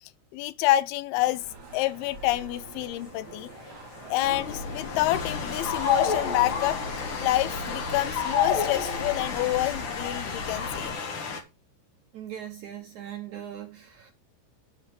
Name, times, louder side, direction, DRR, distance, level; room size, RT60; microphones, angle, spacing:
voice 1, 0.3-1.4 1.7-3.5 4.1-6.8 7.2-10.9, left 15 dB, 85° left, 2.5 m, -27 dB
sound 1, 1.1-9.3, right 4 dB, 40° right, 1.6 m, -46 dB
Train, 1.7-11.4, left 5 dB, 50° left, 1.8 m, -36 dB
sound 2, 4.2-10.9, left 7 dB, 65° left, 3.3 m, -31 dB
voice 2, 12.1-14.1, right 10 dB, 80° right, 1.7 m, -40 dB
11.5 x 4.8 x 5.2 m
omnidirectional pair, 4.5 m